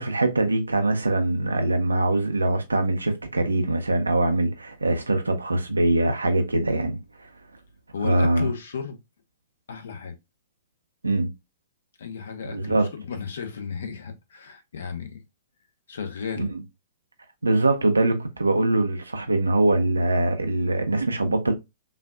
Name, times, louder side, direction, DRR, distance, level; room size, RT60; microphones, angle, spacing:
voice 1, 0.0-7.0 8.0-8.5 11.0-11.3 12.4-12.9 16.4-16.6 17.4-21.5, right 2 dB, 85° right, 0.7 m, -23 dB
voice 2, 7.9-9.0 9.7-10.1 12.0-15.2 15.9-16.5, left 6 dB, 65° left, 0.9 m, -34 dB
5.5 x 2.5 x 2.3 m
figure-of-eight pair, 110°, 0 cm